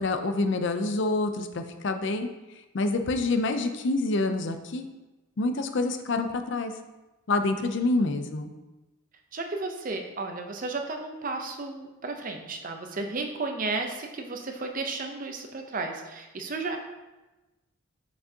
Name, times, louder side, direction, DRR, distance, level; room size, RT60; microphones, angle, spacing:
voice 1, 0.0-2.3 2.7-4.9 5.4-6.7 7.3-8.5, left 2 dB, 55° left, 7 dB, 0.5 m, -27 dB
voice 2, 9.3-16.8, right 3 dB, 40° right, 4 dB, 0.6 m, -33 dB
6.1 x 6.0 x 2.8 m, 1.1 s
head